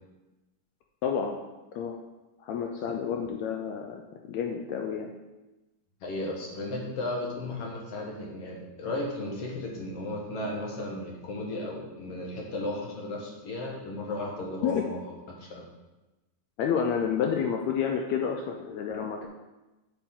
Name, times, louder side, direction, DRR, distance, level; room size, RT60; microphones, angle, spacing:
voice 1, 1.0-1.4 1.8-2.0 2.4-4.0 4.3-5.1 14.6-14.8 16.6-19.3, left 7 dB, 85° left, 2 dB, 1.6 m, -29 dB
voice 2, 6.0-15.7, left 1 dB, 55° left, -1 dB, 2.2 m, -35 dB
8.5 x 7.1 x 3.8 m, 1.1 s
omnidirectional pair, 3.8 m